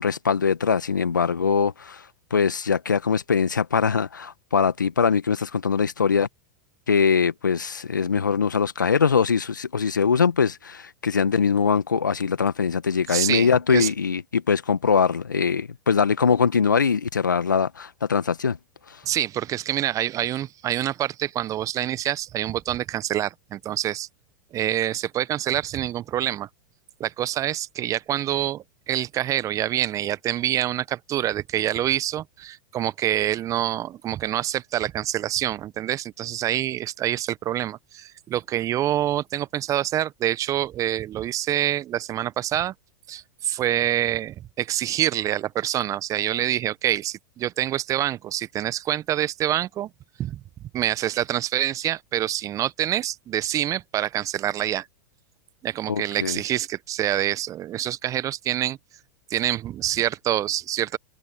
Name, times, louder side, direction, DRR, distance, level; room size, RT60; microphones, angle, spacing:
voice 1, 0.0-2.0 2.3-6.3 6.9-18.6 55.9-56.4, left 6 dB, 85° left, 1.8 m, -22 dB
voice 2, 13.1-13.9 19.0-24.1 24.5-26.5 27.0-42.7 43.1-49.9 50.2-50.4 50.7-54.9 55.6-58.8 59.3-61.0, right 12 dB, 35° right, 1.2 m, -26 dB
open air
hypercardioid pair, 95°, 10 cm